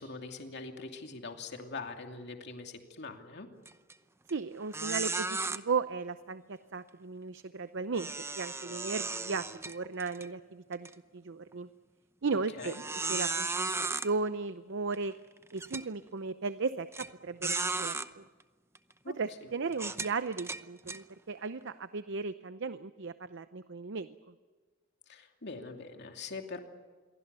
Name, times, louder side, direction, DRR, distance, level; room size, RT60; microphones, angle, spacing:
voice 1, 0.0-3.5 12.3-12.8 19.0-19.5 25.1-26.6, left 3 dB, 55° left, 4 dB, 2.7 m, -43 dB
sound 1, 3.7-3.9 4.3-4.4 4.7-5.6 7.9-10.3 10.7-10.9 11.5-11.6 12.6-14.1 14.9-15.0 15.6-15.9 16.9-17.1 17.4-18.1 18.8-18.9 19.7-21.0, right 3 dB, 15° right, 0.7 m, -35 dB
voice 2, 4.3-10.9 11.1-11.7 12.2-12.7 13.1-15.1 15.5-18.2 19.2-24.1, right 4 dB, 60° right, 12 dB, 0.7 m, -36 dB
27.0 x 23.0 x 6.9 m, 1.4 s
head